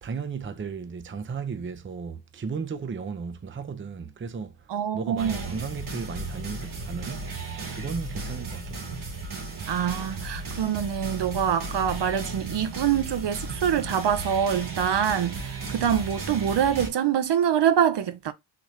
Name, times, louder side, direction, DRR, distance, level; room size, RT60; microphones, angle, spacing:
voice 1, 0.0-9.0, right 5 dB, 25° right, 0.6 m, -35 dB
voice 2, 4.7-5.3 9.7-18.3, right 9 dB, 60° right, 0.7 m, -25 dB
sound 1, 5.2-16.9, right 3 dB, 80° right, 2.3 m, -35 dB
4.1 x 2.9 x 3.1 m
cardioid pair, 65°, 46 cm